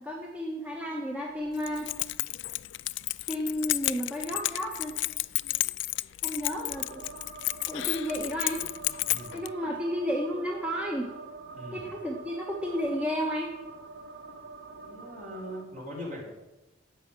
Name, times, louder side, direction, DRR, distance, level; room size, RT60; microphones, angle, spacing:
voice 1, 0.0-1.9 3.3-5.0 6.2-7.0 7.7-8.6 9.3-11.1 11.7-13.5, equal, 5° right, -2 dB, 1.4 m, -32 dB
Keys jangling, 1.6-9.5, left 18 dB, 70° left, 0.4 m, -32 dB
sound 1, 6.7-15.6, right 4 dB, 85° right, 1.6 m, -45 dB
voice 2, 9.0-9.4 11.5-11.9 14.8-16.2, equal, 40° right, -1 dB, 4.5 m, -41 dB
15.0 x 5.8 x 9.8 m, 1.1 s
head